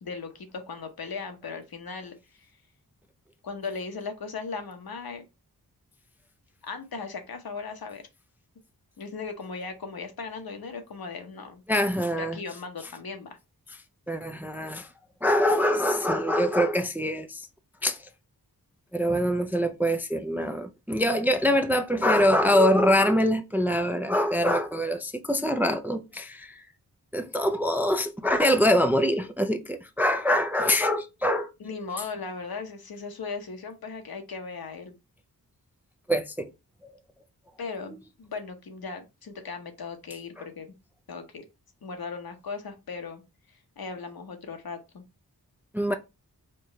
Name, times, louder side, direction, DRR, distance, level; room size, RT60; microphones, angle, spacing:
voice 1, 0.0-2.5 3.4-5.2 6.6-8.0 9.0-11.6 12.2-13.4 31.6-34.9 37.6-40.7 41.1-41.5 41.8-43.2 43.8-45.0, left 4 dB, 65° left, 0.9 m, -37 dB
voice 2, 11.7-12.4 14.1-14.9 15.2-17.5 17.8-18.1 18.9-26.6 27.1-31.5 36.1-36.5 45.7-45.9, equal, 5° right, 0.4 m, -24 dB
4.5 x 2.4 x 3.0 m
cardioid pair, 50°, 38 cm